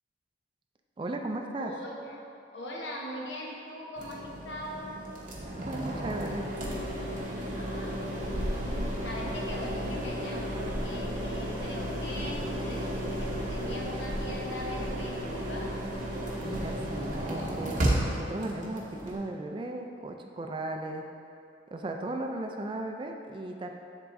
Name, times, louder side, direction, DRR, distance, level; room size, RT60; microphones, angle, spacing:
voice 1, 1.0-1.7 5.5-6.5 16.4-21.1 21.7-23.7, right 2 dB, 25° right, 3 dB, 0.3 m, -36 dB
voice 2, 1.6-2.2 2.5-5.0 7.5-15.8, equal, 75° left, -2 dB, 0.9 m, -41 dB
sound 1, 4.0-19.2, equal, 45° right, 0.9 m, -33 dB
10.0 x 3.6 x 2.6 m, 2.5 s
head